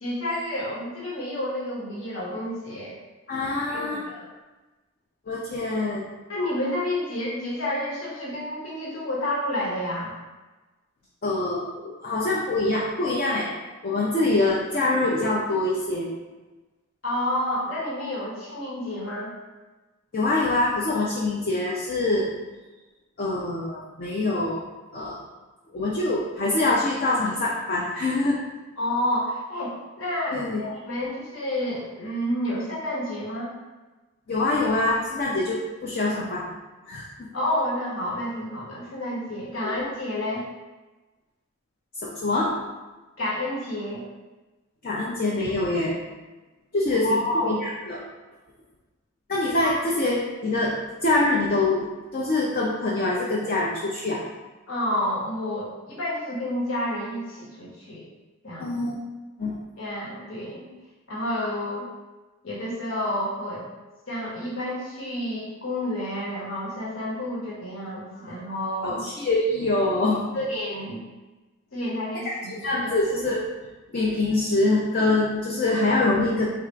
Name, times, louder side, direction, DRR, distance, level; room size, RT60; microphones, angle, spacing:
voice 1, 0.0-3.0 3.7-4.3 6.3-10.1 17.0-19.3 28.8-33.5 37.3-40.4 43.2-44.0 47.0-47.6 49.6-49.7 54.7-58.1 58.4-58.8 59.8-60.7 61.1-61.9 62.4-63.6 64.1-69.0 70.3-71.0 71.7-72.9 73.3-73.4, left 1 dB, 65° left, -6 dB, 1.2 m, -29 dB
voice 2, 3.3-4.0 5.3-6.0 11.2-13.5 13.8-16.1 20.1-22.3 23.2-24.6 24.9-25.2 25.7-28.4 30.3-30.6 34.3-36.4 36.9-37.3 39.6-39.7 42.0-42.5 44.8-45.9 46.7-48.0 49.3-54.2 58.6-59.0 59.4-59.6 68.2-68.3 68.8-70.4 72.5-73.4 73.9-76.5, left 2 dB, 40° left, -5 dB, 0.5 m, -24 dB
3.5 x 2.4 x 4.4 m, 1.2 s
head